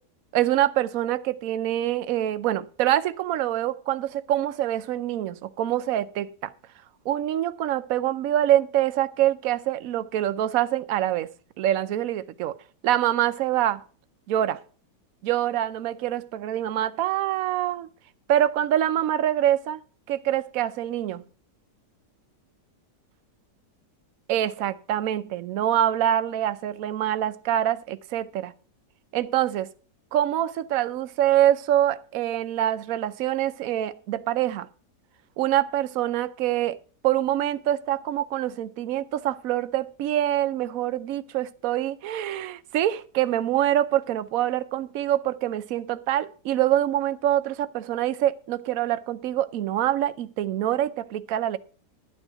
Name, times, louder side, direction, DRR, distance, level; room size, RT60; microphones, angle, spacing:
voice 1, 0.3-6.5 7.0-11.3 11.6-12.5 12.8-13.8 14.3-14.6 15.2-17.9 18.3-19.8 20.1-21.2 24.3-28.5 29.1-29.7 30.1-34.7 35.4-36.8 37.0-51.6, right 12 dB, 65° right, 1.0 m, -25 dB
11.5 x 9.0 x 4.7 m
omnidirectional pair, 1.8 m